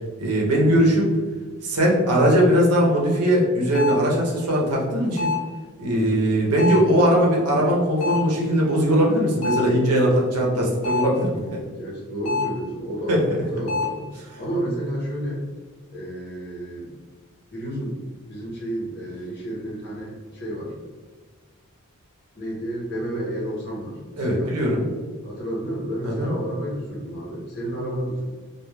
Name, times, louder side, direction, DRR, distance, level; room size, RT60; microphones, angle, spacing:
voice 1, 0.2-1.1 1.6-5.3 5.8-11.7 13.1-13.2 24.2-24.8 26.0-26.3, equal, 90° right, -2 dB, 0.8 m, -20 dB
sound 1, 3.7-4.1 5.2-5.6 6.6-7.0 8.0-8.4 9.4-9.8 10.8-11.2 12.2-12.7 13.7-14.0, left 4 dB, 80° left, 0.8 m, -26 dB
voice 2, 5.9-6.3 11.7-14.1 14.4-15.4 15.9-16.9 17.5-20.7 22.4-24.5 25.2-28.3, right 1 dB, 50° left, -4 dB, 0.9 m, -31 dB
3.2 x 2.3 x 2.3 m, 1.4 s
head